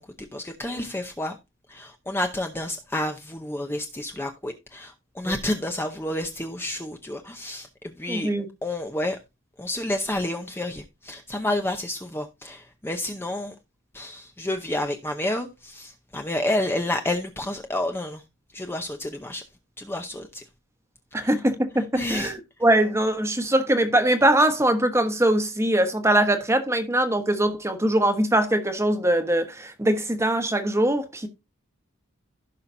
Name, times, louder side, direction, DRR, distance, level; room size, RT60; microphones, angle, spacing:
voice 1, 0.0-1.4 1.7-8.3 8.6-9.2 9.6-13.5 13.9-18.2 18.5-19.4 19.8-20.4 21.1-21.3 21.9-22.3, left 1 dB, 10° left, 0.7 m, -30 dB
voice 2, 8.1-8.5 21.1-31.3, right 1 dB, 15° right, 1.2 m, -22 dB
16.0 x 5.7 x 2.7 m
head